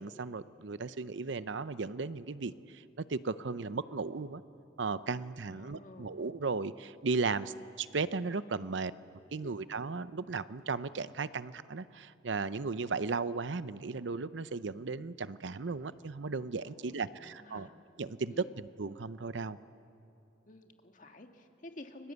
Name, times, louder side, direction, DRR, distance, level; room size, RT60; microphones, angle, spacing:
voice 1, 0.0-4.4 4.8-8.9 9.3-17.7 18.0-19.6, right 4 dB, 80° right, 14 dB, 0.7 m, -36 dB
voice 2, 5.5-6.2 9.4-9.6 16.6-17.7 18.3-18.5 20.5-22.1, left 1 dB, 45° left, 5 dB, 1.8 m, -51 dB
30.0 x 22.5 x 8.2 m, 2.6 s
head